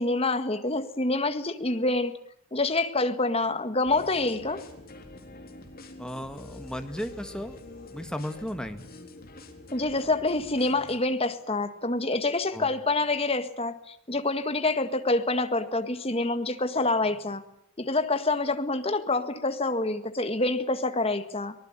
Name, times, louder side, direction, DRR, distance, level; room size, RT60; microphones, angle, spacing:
voice 1, 0.0-2.2 2.5-4.6 9.7-17.4 17.8-21.5, left 2 dB, 25° left, 9 dB, 1.8 m, -27 dB
sound 1, 3.8-11.0, left 2 dB, 40° left, 3.9 m, -46 dB
voice 2, 6.0-7.6 7.9-8.8 12.5-12.7, equal, 5° left, 7 dB, 1.8 m, -35 dB
23.5 x 19.5 x 8.9 m, 0.71 s
head